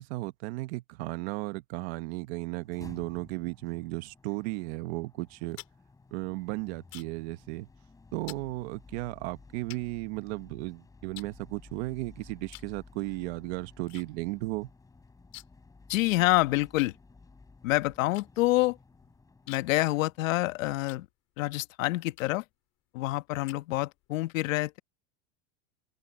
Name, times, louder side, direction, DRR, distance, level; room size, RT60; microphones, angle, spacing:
voice 1, 0.0-5.6 6.1-7.7 8.1-14.7, right 21 dB, 50° right, 1.1 m, -35 dB
sound 1, 2.6-20.7, left 3 dB, 10° left, 4.2 m, -54 dB
sound 2, 5.2-7.3 7.6-7.9 8.3-8.5 9.1-9.2 9.7-10.7 11.1-12.0 12.5-12.8 13.1-14.1 14.3-14.4 14.7-15.7 16.0-16.1 16.8-21.5 22.1-22.5 23.0-24.1, left 18 dB, 40° left, 2.9 m, -50 dB
voice 2, 15.9-16.9 17.6-18.8 19.5-21.1 21.4-22.4 22.9-24.8, left 18 dB, 75° left, 1.3 m, -27 dB
supercardioid pair, 165°, 40 cm